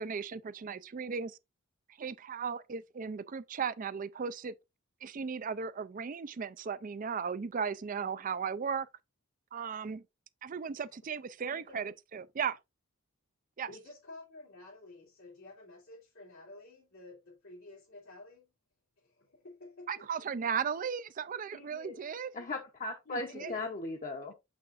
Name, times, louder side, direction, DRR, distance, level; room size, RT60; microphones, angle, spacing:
voice 1, 0.0-1.4 2.0-4.5 5.0-8.9 9.5-10.0 10.4-12.6 13.6-13.7 19.9-22.3 23.1-23.5, right 6 dB, 40° right, 0.4 m, -36 dB
voice 2, 11.5-11.9 13.7-18.5 19.0-20.3 21.5-22.0 23.1-23.6, left 2 dB, 85° left, 2.6 m, -51 dB
voice 3, 22.3-24.3, left 2 dB, 40° left, 0.8 m, -37 dB
6.5 x 6.3 x 2.5 m
head